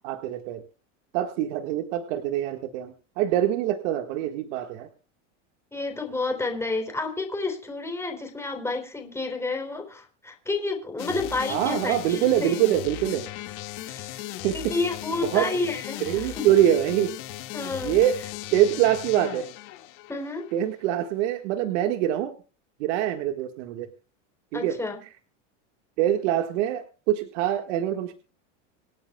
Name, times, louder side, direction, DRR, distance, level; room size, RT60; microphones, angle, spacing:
voice 1, 0.0-0.6 1.1-4.9 11.5-13.2 14.4-14.7 15.2-15.5 16.0-17.1 17.8-18.2 18.5-19.5 20.5-22.3 22.8-23.9 24.5-24.8 26.0-28.1, right 12 dB, 70° right, 5 dB, 1.7 m, -24 dB
voice 2, 5.7-12.6 13.9-14.2 14.5-16.5 17.5-18.0 20.1-20.5 24.5-25.0, left 3 dB, 5° left, 4 dB, 3.7 m, -30 dB
sound 1, 11.0-20.6, left 16 dB, 55° left, 2.0 m, -37 dB
26.5 x 9.3 x 2.3 m, 0.34 s
supercardioid pair, 115°, 37 cm